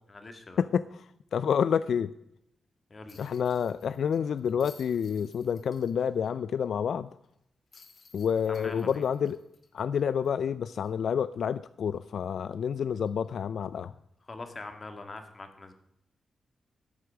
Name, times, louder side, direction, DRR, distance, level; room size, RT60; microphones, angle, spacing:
voice 1, 0.1-0.7 2.9-3.2 8.5-9.0 14.3-15.7, left 3 dB, 35° left, 7 dB, 1.8 m, -43 dB
voice 2, 1.3-2.1 3.2-7.1 8.1-9.4 9.7-13.9, left 7 dB, 75° left, 15 dB, 0.3 m, -28 dB
sound 1, 3.1-6.3 6.6-6.7 7.7-10.4 10.8-10.9 13.1-13.3, left 5 dB, 55° left, 1.4 m, -57 dB
13.0 x 8.0 x 6.2 m, 0.81 s
wide cardioid pair, 120°, 0 cm